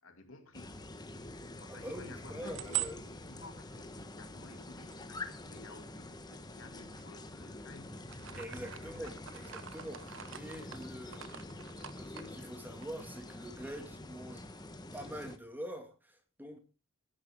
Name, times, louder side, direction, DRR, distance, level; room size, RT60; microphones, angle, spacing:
voice 1, 0.0-0.8 1.6-8.1 8.8-9.2, left 2 dB, 80° left, 2.4 m, -54 dB
sound 1, 0.5-15.4, left 2 dB, 20° left, 1.2 m, -47 dB
voice 2, 1.8-3.0 8.3-11.5 11.9-14.5 14.9-16.6, equal, 10° right, 2.1 m, -45 dB
sound 2, 2.5-6.2 6.8-7.6 7.9-13.4 13.7-13.8 14.1-15.3, right 13 dB, 65° right, 1.0 m, -44 dB
16.0 x 10.5 x 3.6 m
head